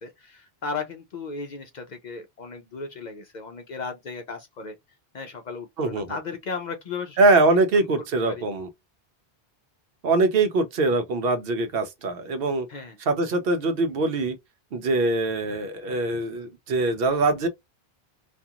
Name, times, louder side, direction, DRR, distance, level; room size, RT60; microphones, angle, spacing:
voice 1, 0.0-4.8 5.1-7.2 8.2-8.4 12.7-13.0, left 4 dB, 55° left, 0.5 m, -35 dB
voice 2, 5.8-6.2 7.2-8.7 10.0-12.7 13.0-14.4 14.7-17.5, right 3 dB, 65° right, 0.8 m, -23 dB
2.4 x 2.4 x 2.7 m
omnidirectional pair, 1.1 m